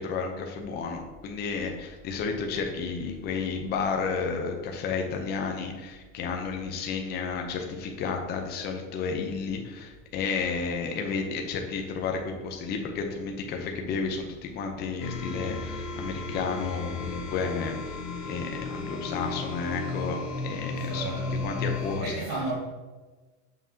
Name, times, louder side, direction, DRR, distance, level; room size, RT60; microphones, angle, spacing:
voice 1, 0.0-17.8 18.2-22.2, left 5 dB, 25° left, 3 dB, 0.7 m, -32 dB
sound 1, 15.0-22.0, left 3 dB, 65° left, 1.4 m, -34 dB
voice 2, 20.7-21.4 21.8-22.5, right 3 dB, 75° right, -7 dB, 2.0 m, -34 dB
7.1 x 5.6 x 2.8 m, 1.2 s
supercardioid pair, 150°, 39 cm